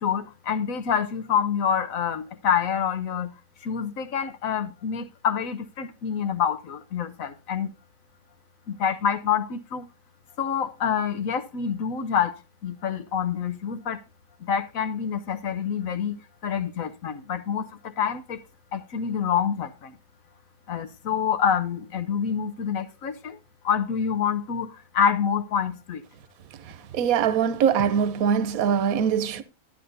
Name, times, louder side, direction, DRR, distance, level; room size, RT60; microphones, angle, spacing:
voice 1, 0.0-7.7 8.7-9.9 10.4-12.4 12.6-14.0 14.4-16.2 16.4-18.4 18.7-20.0 20.7-23.4 23.6-26.0, left 7 dB, 70° left, 1.3 m, -27 dB
voice 2, 26.9-29.4, right 8 dB, 75° right, 1.2 m, -22 dB
12.5 x 10.5 x 2.7 m
omnidirectional pair, 1.5 m